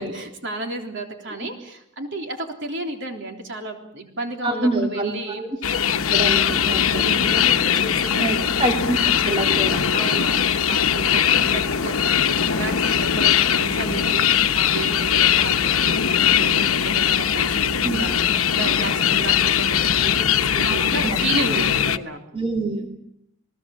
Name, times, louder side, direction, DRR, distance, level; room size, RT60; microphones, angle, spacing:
voice 1, 0.0-5.4 6.9-8.6 9.9-22.2, right 2 dB, 60° right, 3 dB, 3.6 m, -32 dB
voice 2, 4.4-5.1 5.4-5.8 6.1-7.1 8.2-9.8 17.8-18.0 20.6-21.2 22.3-22.9, right 2 dB, 25° right, 2 dB, 2.5 m, -26 dB
sound 1, 5.6-22.0, left 8 dB, 85° left, 1.0 m, -20 dB
29.0 x 19.0 x 7.3 m, 0.78 s
head